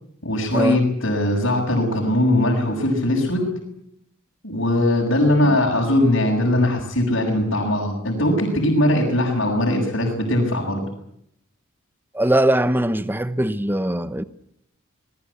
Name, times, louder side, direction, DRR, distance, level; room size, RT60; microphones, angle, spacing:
voice 1, 0.2-3.5 4.4-10.8, left 1 dB, 65° left, 6.7 m, -20 dB
voice 2, 12.1-14.2, right 1 dB, 10° right, 0.9 m, -21 dB
25.0 x 21.0 x 8.4 m
head